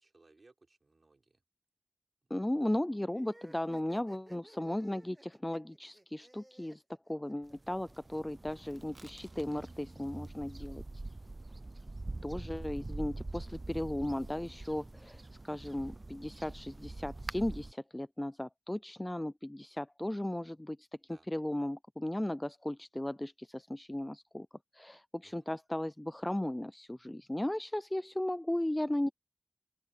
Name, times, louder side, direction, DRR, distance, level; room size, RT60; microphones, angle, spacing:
voice 1, 0.0-1.4 2.2-2.7 11.2-11.8 21.1-21.3 25.2-25.5, right 3 dB, 75° right, 4.5 m, -66 dB
voice 2, 2.3-6.8 7.1-11.0 12.2-20.9 21.3-24.5 24.7-29.1, left 1 dB, 20° left, 0.4 m, -36 dB
sound 1, 3.1-7.8, right 1 dB, 25° right, 1.1 m, -57 dB
sound 2, 7.5-17.7, right 2 dB, 50° right, 0.6 m, -45 dB
open air
wide cardioid pair, 50°, 0 cm